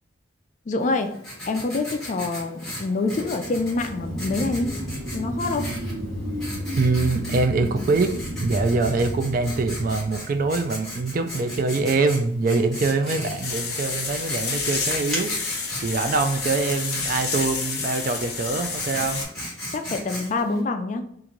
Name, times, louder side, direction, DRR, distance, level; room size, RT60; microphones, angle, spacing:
voice 1, 0.7-1.2 1.5-4.8 5.1-5.7 19.7-21.1, left 3 dB, 40° left, 6 dB, 0.3 m, -26 dB
Writing, 0.8-20.6, left 1 dB, 5° left, 1.1 m, -37 dB
sound 1, 3.0-12.0 12.5-12.6, equal, 90° right, 1.3 m, -33 dB
voice 2, 6.8-15.3 15.8-19.2, right 3 dB, 45° right, 8 dB, 0.3 m, -24 dB
sound 2, 13.4-19.2, left 4 dB, 55° left, 0.7 m, -29 dB
3.0 x 2.5 x 3.8 m, 0.71 s
head